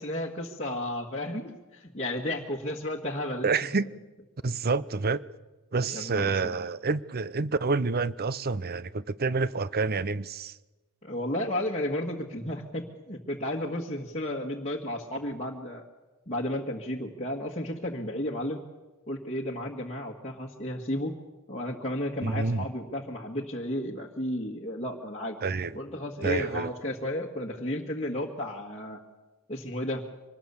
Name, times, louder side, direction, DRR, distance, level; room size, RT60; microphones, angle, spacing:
voice 1, 0.0-3.5 5.9-6.6 11.0-15.8 16.3-18.6 19.1-21.1 21.5-25.4 25.8-29.0 29.5-30.0, left 1 dB, 30° left, 1.7 m, -33 dB
voice 2, 3.4-3.9 4.4-5.2 5.7-10.6 22.2-22.7 25.4-25.8 26.2-26.7, right 4 dB, 45° right, 0.7 m, -28 dB
24.5 x 19.5 x 7.1 m
head